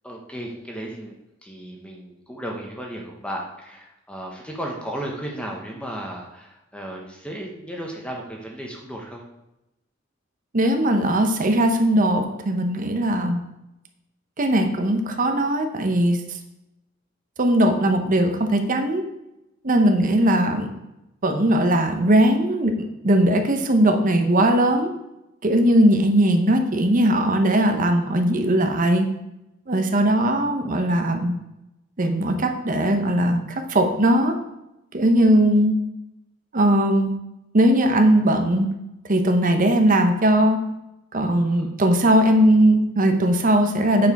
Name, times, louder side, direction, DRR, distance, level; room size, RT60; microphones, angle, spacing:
voice 1, 0.0-1.2 1.4-9.2 30.6-30.9 41.4-41.7, right 1 dB, 5° left, -1 dB, 1.0 m, -35 dB
voice 2, 10.5-13.4 14.4-16.2 17.4-19.0 19.6-20.7 21.2-24.9 25.4-29.1 29.7-31.4 32.0-34.4 34.9-35.8 36.5-37.1 37.5-38.7 39.1-40.6 41.1-44.1, right 1 dB, 45° right, 5 dB, 0.8 m, -19 dB
8.6 x 4.6 x 4.6 m, 0.91 s
head